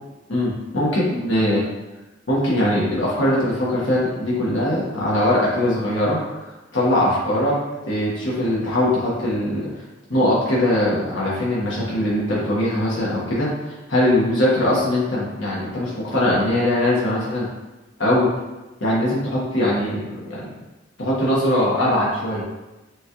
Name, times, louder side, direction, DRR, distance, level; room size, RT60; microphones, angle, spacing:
voice 1, 0.3-1.6 2.3-6.2 6.7-7.6 7.9-9.7 10.1-13.5 13.9-17.5 18.0-18.3 18.8-20.5 21.0-22.4, left 1 dB, 85° left, -6 dB, 1.4 m, -21 dB
6.2 x 2.4 x 3.0 m, 1.1 s
head